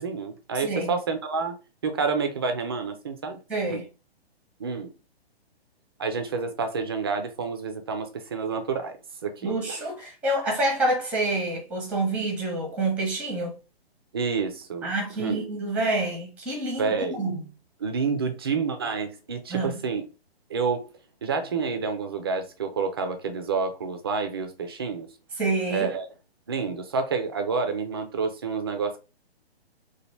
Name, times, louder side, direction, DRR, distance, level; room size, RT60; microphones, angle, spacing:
voice 1, 0.0-1.6 1.8-3.4 3.7-3.8 4.6-4.9 6.0-9.8 14.1-15.5 16.8-17.2 17.8-20.1 20.5-20.9 21.2-25.1 25.7-26.1 26.5-29.0, right 5 dB, 25° right, 0.3 m, -29 dB
voice 2, 0.5-0.9 3.5-3.9 9.4-13.6 14.8-16.9 17.2-17.3 19.5-19.8 25.4-25.9, right 2 dB, 5° right, 0.7 m, -27 dB
2.9 x 2.2 x 3.1 m
figure-of-eight pair, 130°, 32 cm